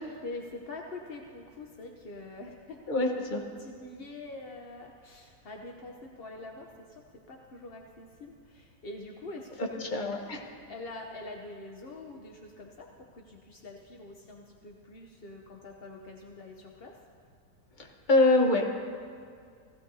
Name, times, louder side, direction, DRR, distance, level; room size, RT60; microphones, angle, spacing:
voice 1, 0.2-2.8 3.3-7.0 7.3-10.2 10.7-17.0, left 2 dB, 55° left, 1 dB, 0.6 m, -45 dB
voice 2, 2.9-3.4 9.8-10.4 17.8-18.7, left 2 dB, 30° left, 2 dB, 1.0 m, -25 dB
17.0 x 15.0 x 2.7 m, 2.2 s
omnidirectional pair, 2.0 m